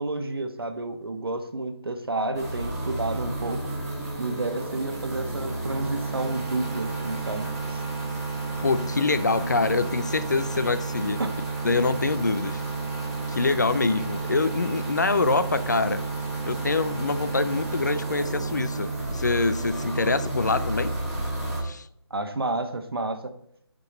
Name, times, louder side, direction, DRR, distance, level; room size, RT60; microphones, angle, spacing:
voice 1, 0.0-3.6 4.2-7.8 11.2-11.3 22.1-23.3, right 2 dB, 60° right, 7 dB, 1.1 m, -30 dB
sound 1, 2.3-21.6, right 3 dB, ahead, 2.1 m, -31 dB
voice 2, 8.6-11.2 11.6-12.6 13.3-16.0 16.5-21.0 21.6-21.9, left 3 dB, 40° left, 13 dB, 0.4 m, -25 dB
11.5 x 5.2 x 4.0 m, 0.70 s
figure-of-eight pair, 155°, 14 cm